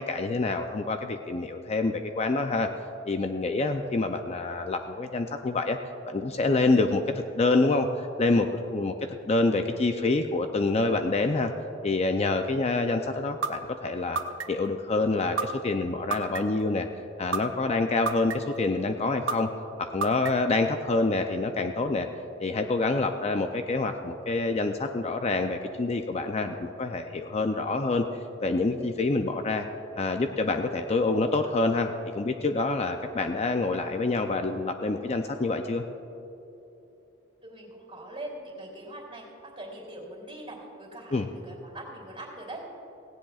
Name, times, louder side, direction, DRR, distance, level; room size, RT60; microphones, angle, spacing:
voice 1, 0.0-2.7 3.0-5.8 6.1-8.9 9.3-11.5 11.8-14.2 14.5-16.9 17.2-19.5 19.8-22.1 22.4-28.1 28.4-29.7 30.0-35.9 41.1-41.3, left 3 dB, 35° left, 6 dB, 0.5 m, -27 dB
sound 1, 13.4-13.5 14.2-14.7 15.4-15.5 16.1-16.6 17.3-17.4 18.1-18.6 19.3-19.4 20.0-20.5, right 4 dB, 75° right, 0.8 m, -28 dB
voice 2, 37.4-42.6, right 1 dB, 30° right, -1 dB, 3.0 m, -42 dB
17.5 x 17.0 x 2.4 m, 2.9 s
head